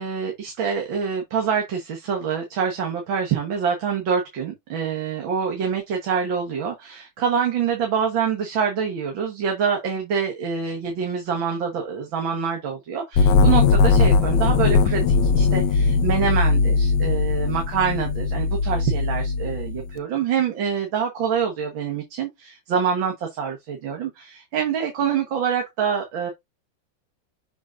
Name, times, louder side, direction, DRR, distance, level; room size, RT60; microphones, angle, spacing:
voice 1, 0.0-26.3, right 7 dB, 80° right, 2.2 m, -26 dB
sound 1, 13.2-19.9, left 4 dB, 70° left, 1.3 m, -19 dB
6.3 x 6.1 x 2.5 m
omnidirectional pair, 2.1 m